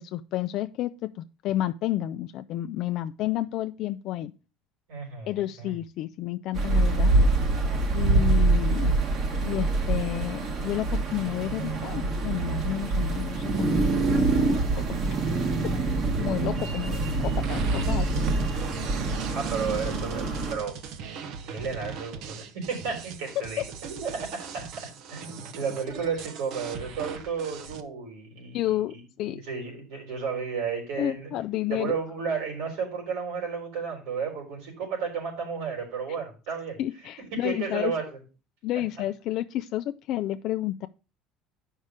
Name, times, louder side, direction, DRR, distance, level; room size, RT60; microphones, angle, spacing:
voice 1, 0.0-4.3 5.3-7.3 7.9-8.9 9.4-15.0 16.2-18.2 23.4-23.6 28.5-29.4 31.0-32.0 36.8-37.9 38.6-40.9, left 14 dB, 60° left, 9 dB, 0.4 m, -31 dB
voice 2, 4.9-5.7 19.3-20.8 21.4-31.3 31.7-36.8 37.4-38.0, right 6 dB, 90° right, 0 dB, 3.9 m, -33 dB
sound 1, 6.5-20.5, right 3 dB, 45° right, 1.3 m, -25 dB
sound 2, 17.4-27.8, right 6 dB, 65° right, 0.8 m, -40 dB
8.0 x 5.5 x 4.9 m, 0.33 s
cardioid pair, 130°, 0 cm